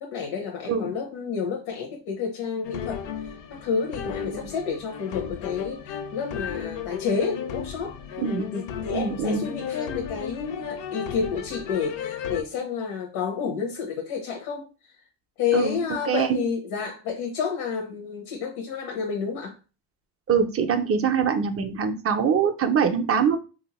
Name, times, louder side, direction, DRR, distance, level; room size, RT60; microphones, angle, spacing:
voice 1, 0.0-8.0 8.5-14.7 15.4-19.5, left 6 dB, 80° left, 1 dB, 0.9 m, -30 dB
sound 1, 2.6-12.4, left 8 dB, 65° left, 0.6 m, -34 dB
voice 2, 8.2-8.5 8.9-9.4 15.5-15.8 16.1-16.4 20.3-23.4, right 6 dB, 30° right, 7 dB, 0.4 m, -23 dB
3.4 x 2.6 x 2.9 m, 0.32 s
cardioid pair, 120°, 49 cm